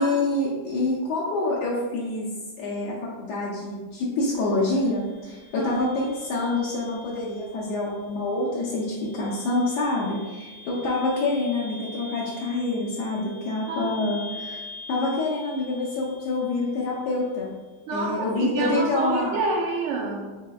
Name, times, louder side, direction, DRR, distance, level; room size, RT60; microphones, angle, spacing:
voice 1, 0.0-2.3 2.6-14.6 14.9-17.5 17.9-19.4, left 2 dB, 85° left, -5 dB, 1.3 m, -26 dB
sound 1, 4.3-17.3, left 2 dB, 25° right, 0.9 m, -45 dB
voice 2, 5.6-5.9 13.7-14.1 17.9-20.4, right 3 dB, 70° right, -1 dB, 0.8 m, -28 dB
4.9 x 3.7 x 2.3 m, 1.3 s
omnidirectional pair, 1.7 m